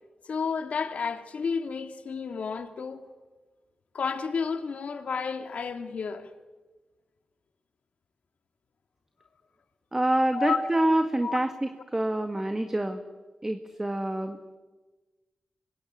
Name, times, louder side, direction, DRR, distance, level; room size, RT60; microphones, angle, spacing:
voice 1, 0.2-3.0 3.9-6.3 10.3-10.6 11.2-11.4, left 5 dB, 70° left, 2.2 m, -31 dB
voice 2, 9.9-13.0 13.4-14.4, right 1 dB, 20° right, 1.8 m, -26 dB
26.0 x 23.0 x 9.9 m
cardioid pair, 65°, 2 cm